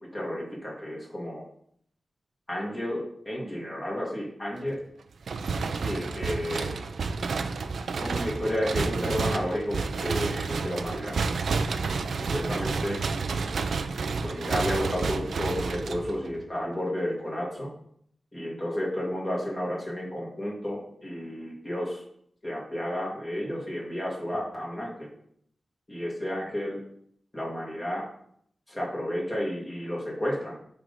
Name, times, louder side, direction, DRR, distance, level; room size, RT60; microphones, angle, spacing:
voice 1, 0.1-1.4 2.5-4.8 5.8-6.7 8.0-11.2 12.1-13.0 14.2-17.7 18.3-22.0 22.4-25.1 25.9-26.8 27.3-28.1 28.7-30.6, equal, 20° left, -4 dB, 1.7 m, -32 dB
sound 1, 5.2-16.4, right 4 dB, 85° right, 0.4 m, -30 dB
6.2 x 3.9 x 5.2 m, 0.66 s
wide cardioid pair, 130°, 0 cm